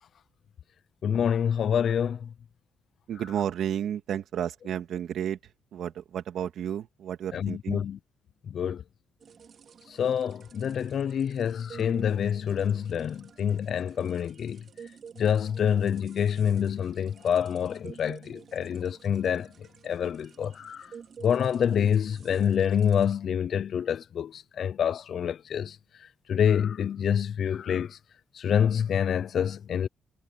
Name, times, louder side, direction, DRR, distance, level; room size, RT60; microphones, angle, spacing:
voice 1, 1.0-2.3 7.3-8.0 8.4-8.8 9.9-14.6 15.2-19.5 19.8-20.9 21.2-25.8 26.3-28.0 28.3-29.9, left 8 dB, 60° left, 0.7 m, -27 dB
voice 2, 3.1-5.4 5.7-7.8, right 9 dB, 70° right, 2.3 m, -32 dB
sound 1, 9.2-23.2, right 7 dB, 50° right, 3.8 m, -51 dB
cardioid pair, 90°, 0 cm